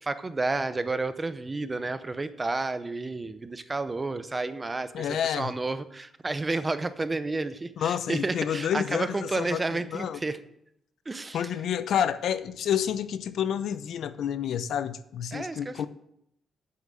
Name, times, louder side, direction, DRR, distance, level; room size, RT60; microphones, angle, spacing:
voice 1, 0.0-5.1 5.4-10.4 11.1-11.4 15.3-15.9, right 3 dB, 15° right, 0.6 m, -31 dB
voice 2, 4.9-5.5 7.8-10.2 11.3-15.9, left 9 dB, 65° left, 0.6 m, -29 dB
8.7 x 7.5 x 7.5 m
wide cardioid pair, 165°, 0 cm